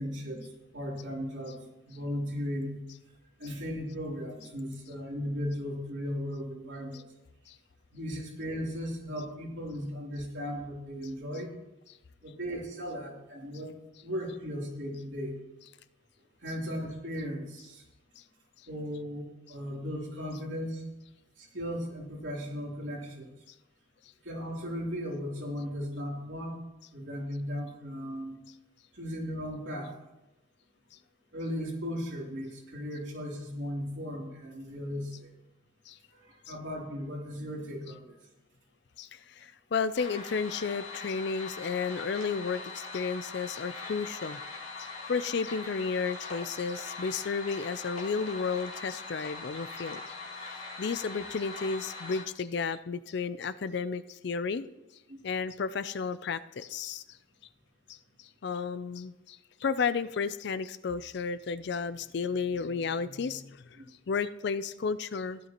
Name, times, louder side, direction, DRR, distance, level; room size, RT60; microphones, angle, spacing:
voice 1, 0.0-2.8 3.4-7.0 7.9-11.5 12.2-13.7 14.0-15.4 16.4-17.8 18.7-20.8 21.4-23.3 24.2-26.6 26.9-28.4 28.9-29.9 31.3-35.3 36.1-38.1 55.1-55.2, equal, 65° right, -3 dB, 3.1 m, -36 dB
voice 2, 39.0-44.4 44.8-50.0 50.4-50.5 50.8-54.7 55.2-57.0 57.9-65.4, left 5 dB, 55° left, 14 dB, 0.4 m, -33 dB
sound 1, 39.9-52.2, left 3 dB, 85° left, 2.2 m, -42 dB
15.0 x 12.0 x 3.0 m, 0.97 s
head